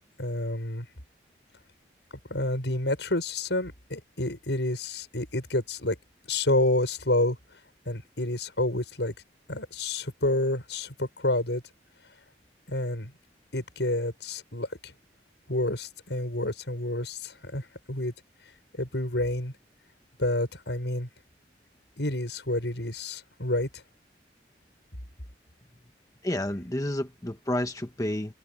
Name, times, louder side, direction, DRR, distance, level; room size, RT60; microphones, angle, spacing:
voice 1, 0.2-0.9 2.3-6.0 6.3-7.4 7.9-9.1 9.5-11.6 12.7-13.1 13.5-14.9 15.5-18.1 18.8-19.5 20.2-21.1 22.0-23.7, left 1 dB, 85° left, 6.3 m, -29 dB
voice 2, 26.2-28.3, left 1 dB, 20° left, 1.2 m, -30 dB
head